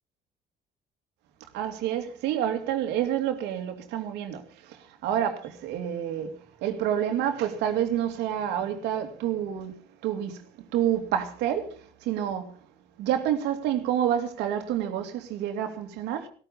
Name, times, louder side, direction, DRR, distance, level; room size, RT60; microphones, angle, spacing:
voice 1, 1.5-9.8 10.0-10.4 10.7-12.6 13.0-16.3, right 10 dB, 90° right, 2.6 m, -28 dB
15.5 x 14.0 x 5.3 m
cardioid pair, 110°, 17 cm